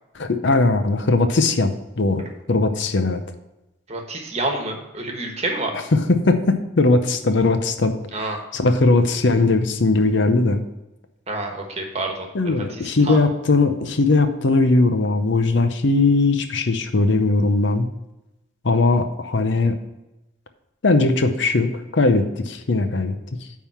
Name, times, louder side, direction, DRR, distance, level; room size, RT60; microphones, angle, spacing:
voice 1, 0.1-3.2 5.9-8.3 8.5-10.6 12.3-17.9 18.6-19.8 20.8-23.2, left 3 dB, 60° left, 8 dB, 0.7 m, -19 dB
voice 2, 3.9-5.7 8.1-8.4 11.3-13.2, right 2 dB, 30° right, 2 dB, 1.3 m, -28 dB
9.4 x 3.7 x 5.6 m, 0.96 s
head